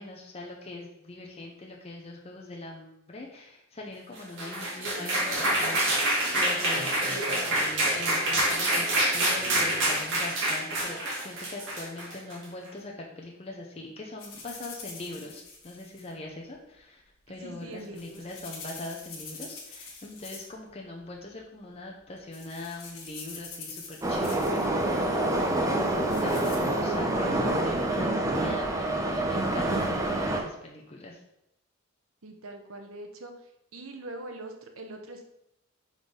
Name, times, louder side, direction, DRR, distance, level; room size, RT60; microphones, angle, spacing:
voice 1, 0.0-17.0 17.3-31.2, left 2 dB, 30° left, -1 dB, 0.7 m, -42 dB
sound 1, 4.2-12.4, right 1 dB, 60° right, 2.0 m, -27 dB
sound 2, 14.2-16.1 17.6-20.7 20.9-21.4 21.9-22.0 22.3-24.7 25.7-26.6, left 4 dB, 80° left, 1.4 m, -45 dB
voice 2, 17.4-18.2 32.2-33.3 33.7-35.2, right 2 dB, 85° right, 4 dB, 1.0 m, -42 dB
Subway metro underground, 24.0-30.4, right 1 dB, 15° right, 0.7 m, -27 dB
5.2 x 3.9 x 5.3 m, 0.82 s
head